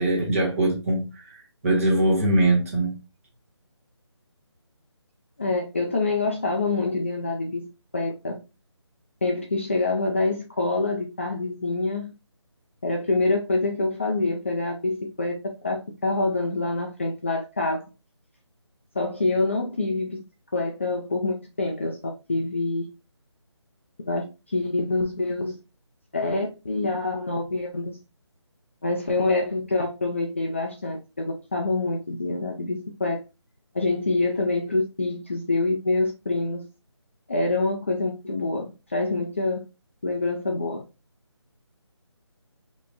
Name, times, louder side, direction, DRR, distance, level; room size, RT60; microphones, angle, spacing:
voice 1, 0.0-3.0, right 2 dB, 30° right, -2 dB, 1.5 m, -22 dB
voice 2, 5.4-7.7 7.9-8.4 9.2-12.1 12.8-15.4 15.6-17.8 18.9-20.2 20.5-22.0 22.3-22.9 24.1-25.6 26.1-28.0 28.8-33.2 33.7-36.6 37.3-39.6 40.0-40.8, left 2 dB, 25° left, 1 dB, 0.4 m, -26 dB
5.5 x 3.0 x 2.4 m, 0.28 s
figure-of-eight pair, 170°, 15 cm